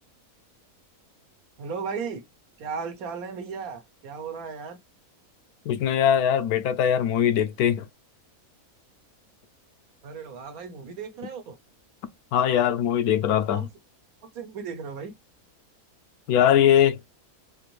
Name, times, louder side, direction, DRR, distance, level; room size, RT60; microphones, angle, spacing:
voice 1, 1.6-2.2 2.6-4.8 10.0-11.6 13.5-13.7 14.3-15.1, right 5 dB, 70° right, 1.3 m, -35 dB
voice 2, 5.7-7.8 12.3-13.6 16.3-17.0, left 9 dB, 80° left, 1.1 m, -21 dB
4.1 x 2.6 x 3.0 m
omnidirectional pair, 1.6 m